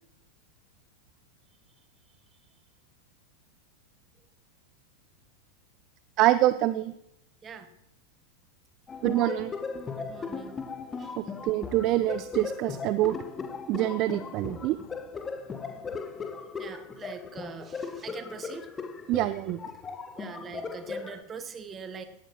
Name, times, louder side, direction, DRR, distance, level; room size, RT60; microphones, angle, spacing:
voice 1, 6.2-6.9 9.0-9.5 11.4-13.2 13.7-14.8 19.1-19.6, right 15 dB, 40° right, 15 dB, 0.4 m, -25 dB
sound 1, 8.9-21.2, left 5 dB, 20° left, 0.9 m, -38 dB
voice 2, 9.9-10.6 11.0-11.2 16.6-18.7 20.2-22.0, right 5 dB, 20° right, 9 dB, 1.2 m, -43 dB
17.0 x 11.5 x 3.0 m, 0.79 s
figure-of-eight pair, 90°, 0 cm